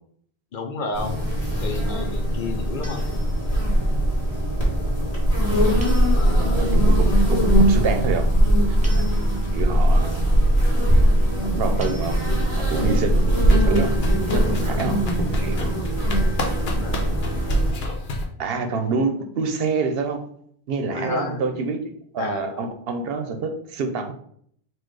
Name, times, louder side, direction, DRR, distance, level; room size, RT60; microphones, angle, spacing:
voice 1, 0.5-1.2 1.6-3.0 6.1-7.0 10.0-10.1 11.4-11.7 14.5-15.1 16.6-17.4 20.9-21.6 22.2-22.7, left 3 dB, 60° left, 4 dB, 0.8 m, -32 dB
sound 1, 0.9-17.7, right 1 dB, 40° left, 1.7 m, -20 dB
sound 2, 2.8-3.7 5.8-6.7 8.8-9.7 11.8-12.7, equal, 10° right, 0.7 m, -45 dB
voice 2, 6.3-8.3 8.8-8.9 9.5-10.3 11.5-12.2 12.5-13.9 14.3-15.7 18.4-20.2 20.7-24.1, right 4 dB, 70° right, 6 dB, 0.8 m, -27 dB
sound 3, 13.3-18.2, left 2 dB, 75° left, 1.0 m, -31 dB
4.4 x 2.3 x 4.6 m, 0.65 s
omnidirectional pair, 1.1 m